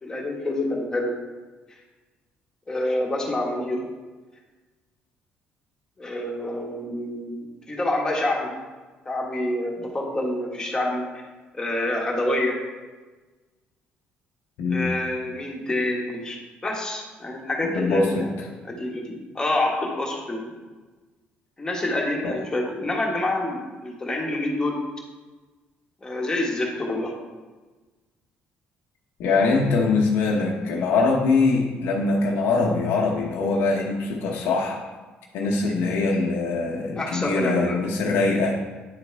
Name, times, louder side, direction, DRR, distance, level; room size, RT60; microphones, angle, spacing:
voice 1, 0.0-1.2 1.7-1.8 2.7-3.9 6.0-8.5 9.0-11.0 11.5-12.6 14.7-18.3 18.6-20.5 21.6-24.9 26.0-27.2 37.0-37.8, left 1 dB, 20° left, -1 dB, 1.5 m, -27 dB
voice 2, 14.6-14.9 17.7-18.5 22.2-22.3 29.2-34.8 35.3-38.6, left 3 dB, 80° left, -2 dB, 0.9 m, -23 dB
9.6 x 4.1 x 3.4 m, 1.3 s
cardioid pair, 110°, 4 cm